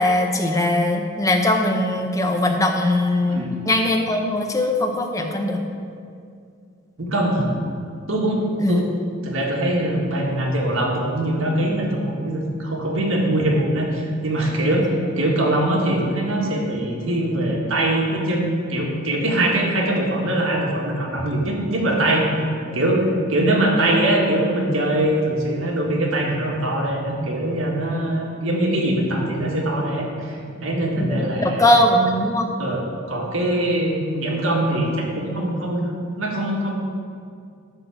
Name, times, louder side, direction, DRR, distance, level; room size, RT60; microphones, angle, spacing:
voice 1, 0.0-5.6 8.6-8.9 31.0-32.5, left 1 dB, 15° left, 3 dB, 0.7 m, -20 dB
voice 2, 7.0-7.5 8.1-8.8 9.2-14.9 15.2-22.5 22.7-31.7 32.6-32.8 33.1-35.9 36.2-36.8, right 1 dB, 75° right, -1 dB, 1.6 m, -22 dB
11.0 x 3.9 x 7.1 m, 2.3 s
head